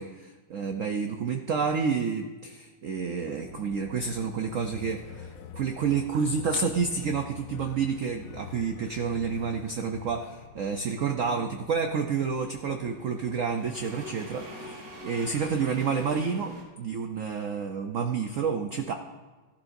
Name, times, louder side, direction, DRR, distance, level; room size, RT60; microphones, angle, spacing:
voice 1, 0.0-18.9, right 5 dB, 85° right, 5 dB, 0.7 m, -29 dB
sound 1, 3.5-13.8, left 3 dB, 55° left, 1.5 m, -50 dB
sound 2, 4.7-10.5, left 9 dB, 70° left, 1.2 m, -46 dB
sound 3, 10.4-16.6, equal, 65° right, 4.3 m, -45 dB
14.5 x 12.0 x 2.6 m, 1.3 s
omnidirectional pair, 2.3 m